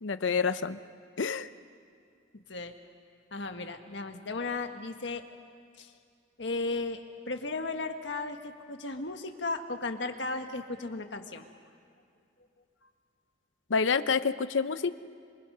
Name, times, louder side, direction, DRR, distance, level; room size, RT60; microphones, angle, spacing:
voice 1, 0.0-0.8 1.2-1.5 13.7-14.9, left 5 dB, 90° left, 13 dB, 0.7 m, -28 dB
voice 2, 3.3-5.2 5.8-5.9 6.4-7.0 7.3-11.4, left 3 dB, 70° left, 6 dB, 1.6 m, -35 dB
28.0 x 25.5 x 5.5 m, 2.3 s
head